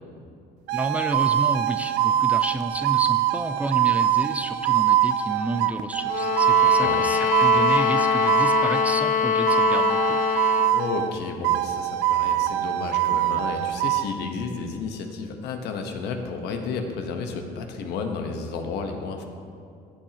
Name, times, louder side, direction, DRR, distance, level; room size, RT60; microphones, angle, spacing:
voice 1, 0.7-10.2, right 1 dB, 10° right, 8 dB, 0.4 m, -30 dB
sound 1, 0.7-9.0 9.5-11.2 11.4-14.1, right 12 dB, 90° right, 0.4 m, -23 dB
sound 2, 6.1-10.8, left 8 dB, 50° left, 0.8 m, -23 dB
voice 2, 6.8-7.1 10.7-19.2, left 4 dB, 80° left, 4 dB, 1.1 m, -32 dB
14.5 x 7.3 x 2.9 m, 2.5 s
cardioid pair, 110°, 17 cm